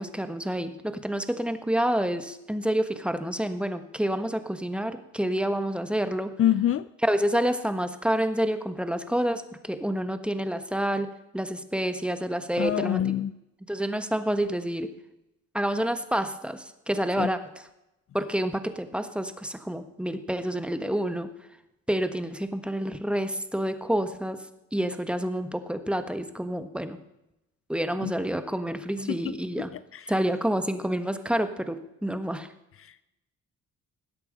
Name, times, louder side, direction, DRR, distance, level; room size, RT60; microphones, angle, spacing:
voice 1, 0.0-6.3 7.0-11.1 11.3-13.0 13.7-14.9 15.5-17.4 18.1-21.3 21.9-24.4 24.7-27.0 27.7-29.7 30.1-32.5, right 1 dB, 5° right, 9 dB, 1.4 m, -28 dB
voice 2, 6.4-6.9 12.6-13.3 17.2-17.3 28.0-28.1 29.1-29.2 29.6-30.1 32.8-33.0, left 11 dB, 50° left, 17 dB, 0.5 m, -26 dB
20.0 x 8.3 x 5.3 m, 0.88 s
cardioid pair, 90°, 30 cm